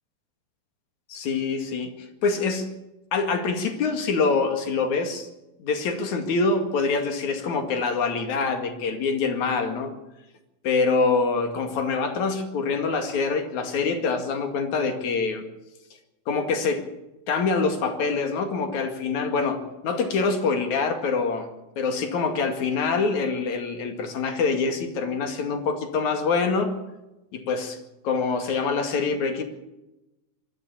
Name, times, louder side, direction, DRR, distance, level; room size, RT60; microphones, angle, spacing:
voice 1, 1.1-2.7 3.1-5.3 5.6-9.9 10.6-15.4 16.3-16.9 17.3-21.5 21.8-26.8 27.3-27.8 28.0-29.4, left 4 dB, 55° left, 6 dB, 3.2 m, -25 dB
23.5 x 13.5 x 8.5 m, 0.99 s
omnidirectional pair, 4.5 m